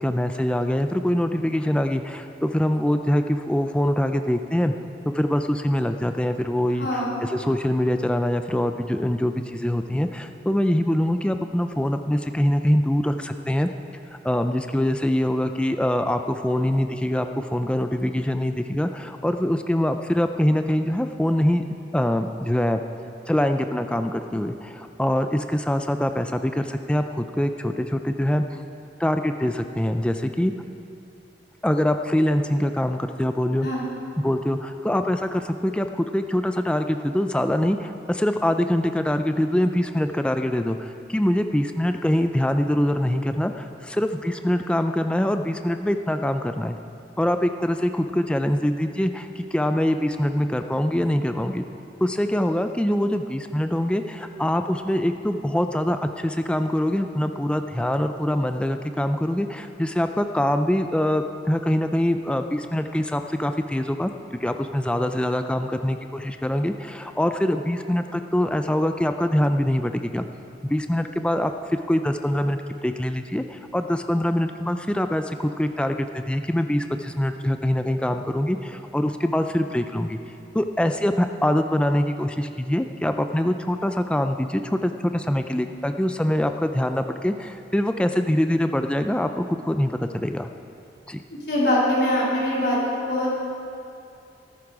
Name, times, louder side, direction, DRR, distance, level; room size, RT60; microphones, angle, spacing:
voice 1, 0.0-4.7 5.1-13.7 14.2-21.7 21.9-22.8 23.3-28.6 29.0-30.5 31.6-33.7 34.2-46.8 47.2-51.6 52.0-64.1 64.4-70.3 70.6-80.2 80.5-90.5 91.1-91.2, left 1 dB, 5° left, 7 dB, 0.4 m, -24 dB
voice 2, 6.8-7.2 33.6-33.8 91.3-93.4, left 1 dB, 65° left, -6 dB, 3.6 m, -23 dB
14.5 x 13.5 x 4.8 m, 2.6 s
head